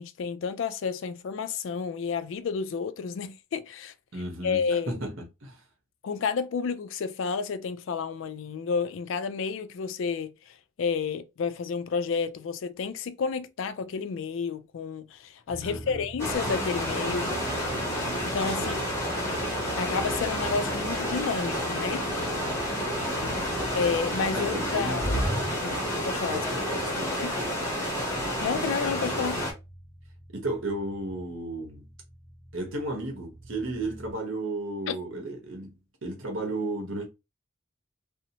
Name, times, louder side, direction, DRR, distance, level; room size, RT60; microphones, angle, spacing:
voice 1, 0.0-3.9 4.4-5.0 6.0-17.3 18.2-18.8 19.8-22.0 23.7-25.1 25.6-26.4 27.2-27.3 28.4-29.4 34.9-35.0, left 5 dB, 65° left, 0.3 m, -30 dB
voice 2, 4.1-5.6 15.6-16.0 18.6-18.8 23.2-23.5 24.3-25.4 26.3-27.7 30.3-31.9 32.5-35.8 36.0-37.1, right 2 dB, 70° right, 0.9 m, -34 dB
sound 1, 15.5-34.1, right 1 dB, 40° right, 0.7 m, -41 dB
sound 2, 16.2-29.5, equal, 15° left, 0.8 m, -30 dB
2.7 x 2.0 x 2.8 m
head